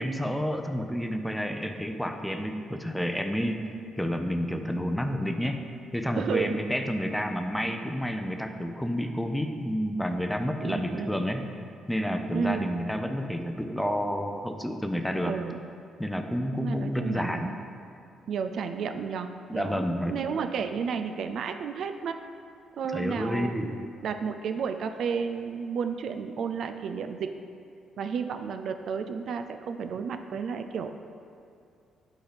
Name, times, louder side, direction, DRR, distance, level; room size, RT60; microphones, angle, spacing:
voice 1, 0.0-3.6 4.0-5.7 5.9-11.5 11.9-15.4 16.0-17.5 19.5-20.1 22.9-23.8, equal, 5° left, 6 dB, 0.6 m, -30 dB
voice 2, 6.1-6.6 10.6-11.1 12.3-12.7 15.2-15.6 16.5-17.5 18.3-22.2 22.8-27.3 28.0-30.9, right 6 dB, 65° right, 8 dB, 0.4 m, -32 dB
8.0 x 4.4 x 5.1 m, 2.5 s
cardioid pair, 90°, 0 cm